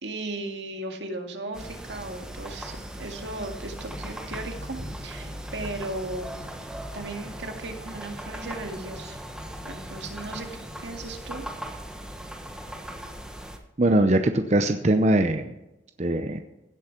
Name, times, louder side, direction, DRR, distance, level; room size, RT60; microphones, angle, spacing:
voice 1, 0.0-6.7 6.9-9.2 9.6-11.5, right 2 dB, 80° right, 4 dB, 2.0 m, -36 dB
sound 1, 1.5-13.6, right 1 dB, 5° right, 1.2 m, -39 dB
sound 2, 3.7-11.0, left 1 dB, 40° left, 2.7 m, -47 dB
voice 2, 13.8-15.5 16.0-16.4, right 1 dB, 40° right, 7 dB, 0.7 m, -21 dB
16.5 x 8.0 x 5.9 m, 0.94 s
head